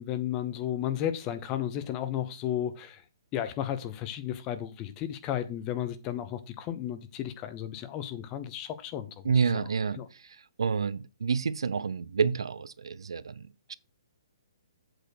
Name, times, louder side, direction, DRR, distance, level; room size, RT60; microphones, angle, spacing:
voice 1, 0.0-3.0 3.3-9.1 10.0-10.1, left 11 dB, 15° left, 0.6 m, -33 dB
voice 2, 9.2-13.7, right 5 dB, 85° right, 0.6 m, -29 dB
7.8 x 4.5 x 6.3 m
hypercardioid pair, 175°, 3 cm